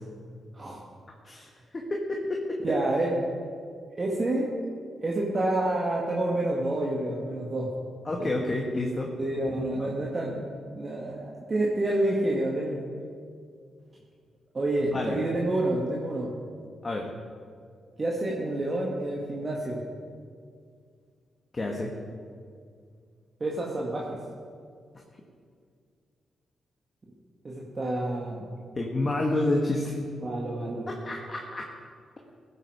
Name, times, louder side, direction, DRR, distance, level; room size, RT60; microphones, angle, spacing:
voice 1, 1.2-2.6 8.1-9.1 14.9-15.2 16.8-17.1 21.5-21.9 28.8-30.0 30.9-31.7, left 2 dB, 35° left, 0 dB, 1.8 m, -29 dB
voice 2, 2.6-3.2 4.0-4.5 5.0-7.7 8.2-8.4 9.2-10.4 10.7-12.9 14.5-16.3 18.0-19.8 23.4-24.2 27.4-28.4 30.2-30.9, right 1 dB, 40° right, -3 dB, 2.1 m, -28 dB
16.0 x 8.8 x 5.1 m, 2.2 s
hypercardioid pair, 45°, 0 cm